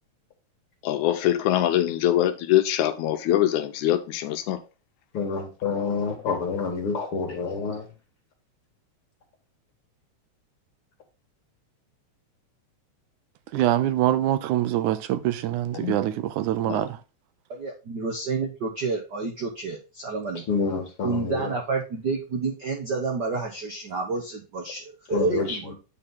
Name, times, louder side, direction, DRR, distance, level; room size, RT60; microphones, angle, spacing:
voice 1, 0.8-4.6 15.7-16.0 16.6-16.8, left 12 dB, 80° left, 2.2 m, -23 dB
voice 2, 5.1-7.8 20.5-21.5 25.1-25.6, left 4 dB, 50° left, 2.3 m, -28 dB
voice 3, 13.5-17.0, right 12 dB, 85° right, 2.2 m, -24 dB
voice 4, 17.5-20.4 21.0-25.7, right 4 dB, 65° right, 1.0 m, -29 dB
9.0 x 4.3 x 3.8 m
omnidirectional pair, 3.4 m